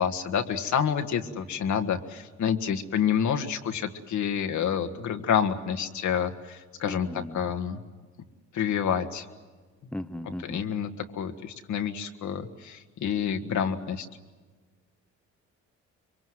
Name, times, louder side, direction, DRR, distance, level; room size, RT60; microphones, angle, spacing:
voice 1, 0.0-7.1 7.3-7.8 8.5-9.3 10.4-14.1, left 8 dB, 70° left, 6 dB, 1.8 m, -28 dB
voice 2, 6.8-7.5 9.9-10.6, left 1 dB, 5° left, 11 dB, 1.1 m, -37 dB
25.0 x 23.5 x 7.9 m, 1.4 s
cardioid pair, 90°, 30 cm